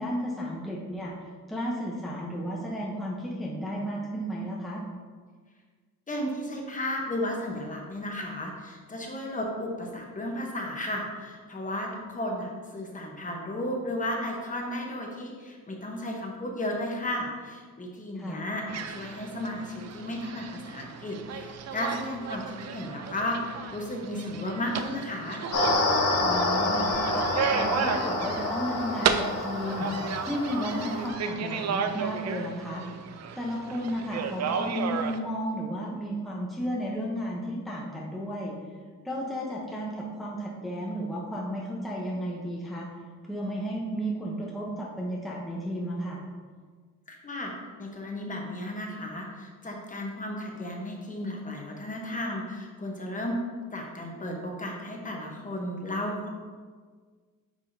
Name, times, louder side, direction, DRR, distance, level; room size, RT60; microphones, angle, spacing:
voice 1, 0.0-4.8 18.1-18.4 26.2-29.9 30.2-32.8 33.4-38.6 39.0-42.9 43.2-46.2, equal, ahead, -4 dB, 0.7 m, -33 dB
voice 2, 6.1-25.4 47.1-53.4 53.7-56.3, left 1 dB, 25° left, 0 dB, 1.0 m, -34 dB
sound 1, 18.7-35.2, right 6 dB, 50° right, 0.5 m, -33 dB
sound 2, 25.5-31.1, left 2 dB, 70° left, 1.5 m, -28 dB
9.6 x 4.8 x 2.7 m, 1.6 s
cardioid pair, 150°, 33 cm